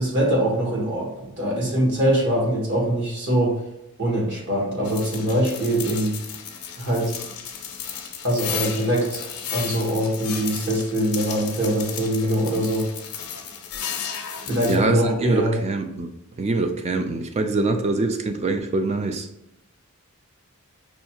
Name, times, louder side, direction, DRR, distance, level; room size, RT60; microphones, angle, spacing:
voice 1, 0.0-3.6 4.0-6.2 6.8-7.1 8.2-12.9 14.5-15.6, right 1 dB, 55° right, 1.3 m, -23 dB
sound 1, 4.8-14.8, left 7 dB, 80° left, 0.6 m, -34 dB
voice 2, 14.7-16.1 16.4-19.3, right 3 dB, 30° right, 0.3 m, -24 dB
5.2 x 2.3 x 2.9 m
head